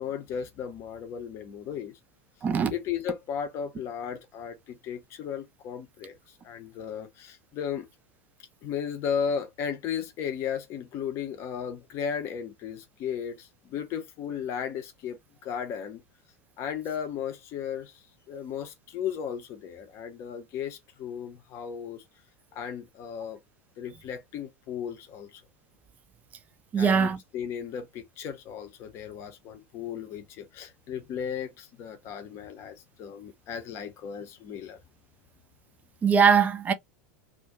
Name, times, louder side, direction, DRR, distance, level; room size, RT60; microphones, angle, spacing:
voice 1, 0.0-1.9 2.7-6.2 6.4-7.9 8.6-16.0 16.6-22.0 22.5-23.4 23.8-25.4 26.7-34.8, left 8 dB, 35° left, 0.6 m, -35 dB
voice 2, 26.7-27.2 36.0-36.7, right 6 dB, 20° right, 0.4 m, -21 dB
2.4 x 2.2 x 2.6 m
figure-of-eight pair, 85°, 8 cm